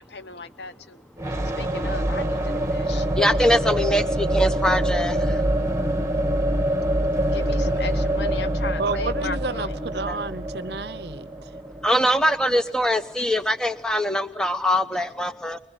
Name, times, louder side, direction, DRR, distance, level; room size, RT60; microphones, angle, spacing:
voice 1, 0.1-1.0 1.6-3.0 7.3-9.7, left 4 dB, 70° left, 13 dB, 0.9 m, -36 dB
sound 1, 1.2-13.0, right 1 dB, 15° right, 1.6 m, -25 dB
voice 2, 2.9-5.4 10.1-10.2 11.8-15.6, equal, 5° left, 9 dB, 1.0 m, -23 dB
voice 3, 8.8-11.2, right 4 dB, 65° right, 16 dB, 0.9 m, -30 dB
25.0 x 22.0 x 9.1 m, 0.88 s
head